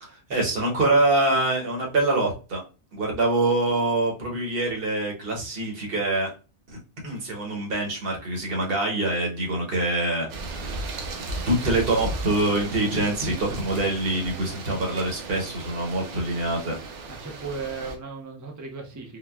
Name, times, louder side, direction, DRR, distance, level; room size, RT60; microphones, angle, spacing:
voice 1, 0.0-2.6 2.9-6.3 6.7-6.8 7.0-10.3 10.5-11.0 11.5-16.7, right 2 dB, 55° right, -1 dB, 1.1 m, -25 dB
sound 1, 10.3-18.0, right 3 dB, 90° right, 1.0 m, -35 dB
voice 2, 17.1-19.2, right 4 dB, 25° right, 0 dB, 0.4 m, -36 dB
3.8 x 2.2 x 2.2 m, 0.32 s
omnidirectional pair, 1.2 m